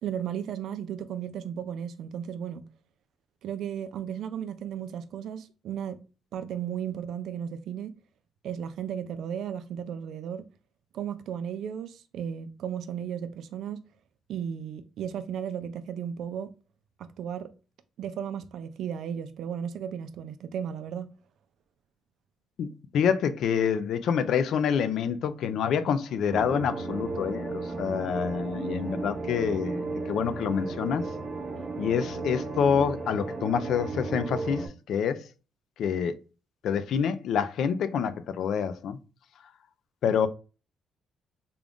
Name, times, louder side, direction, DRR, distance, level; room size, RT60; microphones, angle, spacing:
voice 1, 0.0-2.6 3.4-6.0 6.3-7.9 8.4-10.4 10.9-13.8 14.3-16.5 17.0-17.5 18.0-21.1, right 8 dB, 70° right, 0.4 m, -35 dB
voice 2, 22.6-31.1 31.8-35.3 35.8-36.2 36.6-39.0 40.0-40.3, left 7 dB, 65° left, 0.4 m, -27 dB
sound 1, 26.3-34.7, right 3 dB, 25° right, 0.8 m, -34 dB
3.7 x 2.3 x 3.5 m
cardioid pair, 140°, 0 cm